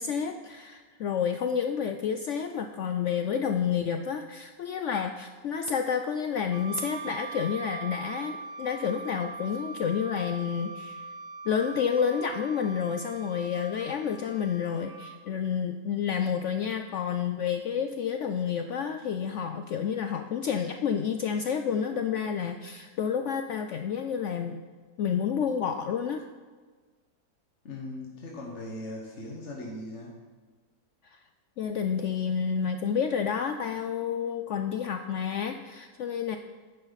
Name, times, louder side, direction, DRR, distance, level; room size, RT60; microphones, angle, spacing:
voice 1, 0.0-11.1 11.5-24.6 25.0-26.2 31.0-31.2 31.6-36.4, left 7 dB, 65° left, 7 dB, 0.7 m, -30 dB
Wind instrument woodwind instrument, 6.5-15.2, right 4 dB, 65° right, 0.9 m, -41 dB
voice 2, 27.6-30.2, left 1 dB, 50° left, -2 dB, 1.6 m, -39 dB
11.0 x 9.2 x 4.0 m, 1.4 s
omnidirectional pair, 1.6 m